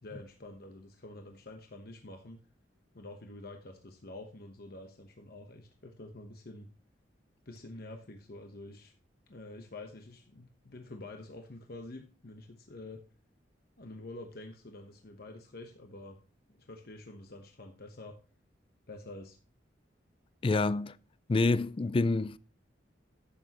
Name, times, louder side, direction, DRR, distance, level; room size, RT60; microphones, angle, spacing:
voice 1, 0.0-2.4 2.9-6.7 7.4-8.9 9.3-13.0 13.8-16.2 16.6-18.2 18.9-19.4, left 2 dB, 55° left, 1.0 m, -47 dB
voice 2, 20.4-20.9 21.3-22.4, left 3 dB, 30° left, 0.4 m, -27 dB
11.5 x 8.2 x 2.9 m
head